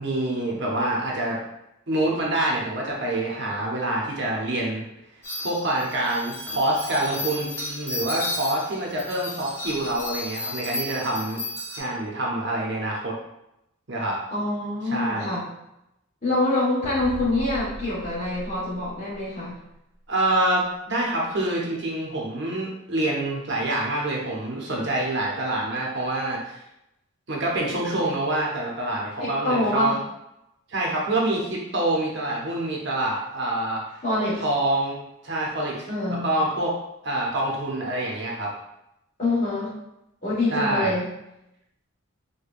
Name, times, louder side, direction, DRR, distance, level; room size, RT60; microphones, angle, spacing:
voice 1, 0.0-1.4 1.9-4.8 5.4-11.4 11.8-13.1 13.9-14.2 14.9-15.3 20.1-26.6 27.3-30.0 30.7-33.8 34.4-35.0 35.2-35.8 36.1-36.7 37.0-38.5 40.5-40.9, right 1 dB, 50° right, -2 dB, 0.7 m, -26 dB
sound 1, 5.2-11.8, left 1 dB, 10° left, 0.7 m, -33 dB
voice 2, 14.3-15.4 16.2-19.6 29.2-30.0 34.0-34.4 35.9-36.3 39.2-39.7 40.2-41.1, left 2 dB, 30° left, -8 dB, 1.4 m, -25 dB
sound 2, 16.8-19.5, left 1 dB, 80° left, 0.4 m, -39 dB
4.9 x 2.2 x 2.4 m, 0.85 s
head